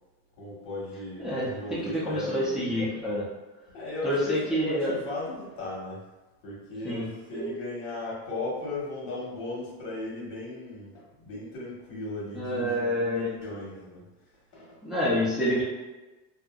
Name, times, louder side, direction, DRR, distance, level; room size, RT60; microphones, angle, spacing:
voice 1, 0.4-2.9 3.7-6.0 6.4-14.0 14.5-14.8, left 2 dB, 85° left, -5 dB, 1.3 m, -37 dB
voice 2, 1.2-3.2 4.0-4.9 6.8-7.0 7.3-7.5 12.3-13.3 14.8-15.6, equal, ahead, -7 dB, 0.4 m, -28 dB
2.7 x 2.5 x 2.3 m, 1.2 s
cardioid pair, 145°, 42 cm